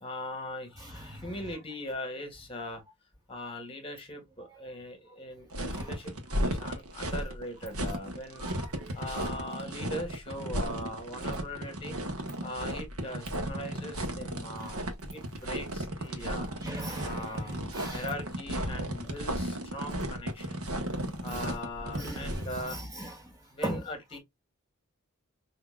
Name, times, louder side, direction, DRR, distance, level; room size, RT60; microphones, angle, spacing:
voice 1, 0.0-2.8 3.3-8.4 8.9-12.0 12.4-14.8 15.1-16.5 17.0-20.7 21.2-22.8 23.5-24.2, left 1 dB, 25° left, 1.5 m, -40 dB
voice 2, 0.9-1.2 5.7-5.9 8.4-8.9 14.5-14.7 16.6-17.4 17.7-18.0 21.0-21.3 21.9-23.1 23.6-23.8, right 1 dB, 15° right, 2.1 m, -39 dB
sound 1, 5.5-22.6, right 1 dB, 70° right, 1.1 m, -34 dB
5.9 x 2.8 x 2.3 m
head